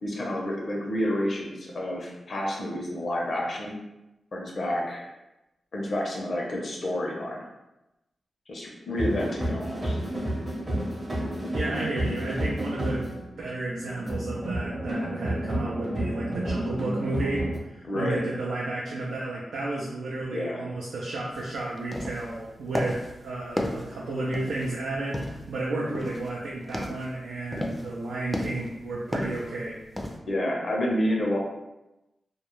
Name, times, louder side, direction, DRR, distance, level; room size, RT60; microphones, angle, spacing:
voice 1, 0.0-3.8 4.3-5.1 5.7-7.4 8.5-10.0 17.8-18.2 20.3-20.6 30.3-31.4, left 1 dB, 65° left, -2 dB, 0.7 m, -29 dB
sound 1, 9.0-17.6, right 1 dB, 35° right, 0.7 m, -30 dB
voice 2, 11.5-29.8, right 2 dB, 90° right, -5 dB, 0.4 m, -32 dB
sound 2, 21.3-21.5 21.8-22.4 22.7-23.1 23.6-24.7 25.1-25.5 25.9-26.3 26.6-27.1 27.5-27.9 28.3-28.8 29.1-29.5 30.0-30.2, left 1 dB, 15° left, 0.4 m, -32 dB
2.3 x 2.0 x 3.0 m, 0.96 s
cardioid pair, 55°, 0 cm